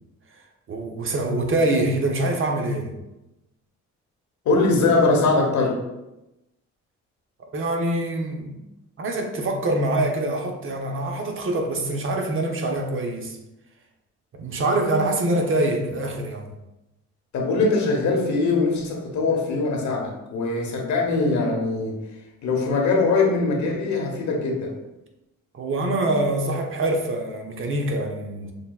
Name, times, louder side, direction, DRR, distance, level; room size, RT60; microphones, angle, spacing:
voice 1, 0.7-2.9 7.5-8.6 9.0-13.4 14.3-16.5 25.5-28.5, right 2 dB, 45° right, 3 dB, 0.7 m, -25 dB
voice 2, 4.4-5.8 17.3-22.0 22.4-24.7, left 3 dB, 70° left, 0 dB, 1.0 m, -22 dB
6.5 x 2.3 x 2.3 m, 0.95 s
cardioid pair, 90°, 30 cm